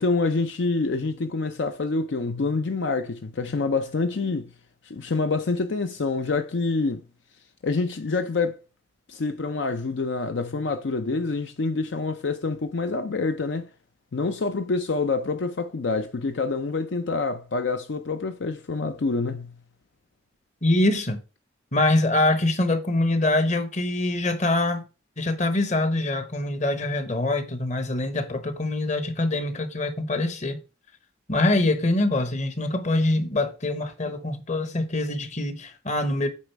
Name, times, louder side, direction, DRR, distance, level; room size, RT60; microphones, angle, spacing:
voice 1, 0.0-4.5 4.8-7.0 7.6-8.6 9.1-13.7 14.1-19.5, left 3 dB, 70° left, 0.6 m, -26 dB
voice 2, 20.6-21.2 21.7-24.8 25.2-30.6 31.3-36.3, left 2 dB, 40° left, 1.0 m, -24 dB
8.6 x 4.1 x 4.5 m
head